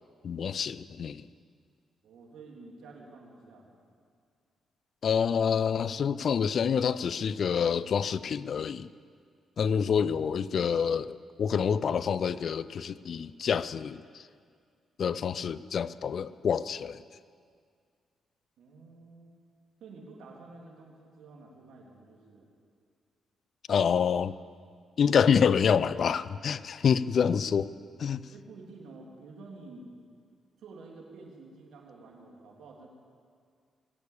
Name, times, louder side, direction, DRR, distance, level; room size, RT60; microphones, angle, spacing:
voice 1, 0.2-1.3 5.0-8.9 9.6-14.3 15.0-17.0 23.7-24.3 25.0-27.7 28.0-28.2, left 7 dB, 60° left, 17 dB, 0.5 m, -27 dB
voice 2, 2.0-3.8 18.6-19.3 19.8-22.5 28.3-29.9 30.6-32.9, right 3 dB, 80° right, -1 dB, 3.2 m, -50 dB
20.0 x 8.3 x 8.7 m, 2.1 s
supercardioid pair, 60°, 0 cm